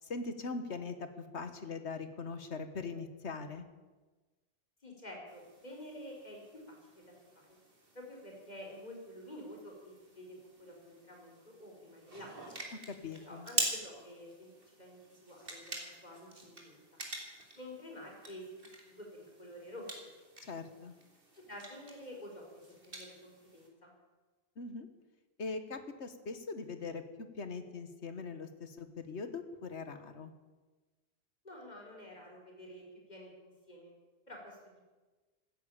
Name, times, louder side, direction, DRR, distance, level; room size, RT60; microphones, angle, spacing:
voice 1, 0.0-3.7 12.9-13.5 20.4-20.9 24.6-24.9 25.4-30.3, left 4 dB, 70° left, 10 dB, 1.7 m, -41 dB
voice 2, 4.8-7.6 7.9-12.5 13.3-14.5 14.8-16.8 17.5-19.9 21.4-23.9 31.4-33.9 34.3-34.9, left 1 dB, 40° left, 0 dB, 4.5 m, -50 dB
sound 1, 5.3-23.7, right 2 dB, 50° right, 3.2 m, -45 dB
15.5 x 10.5 x 8.7 m, 1.3 s
omnidirectional pair, 1.2 m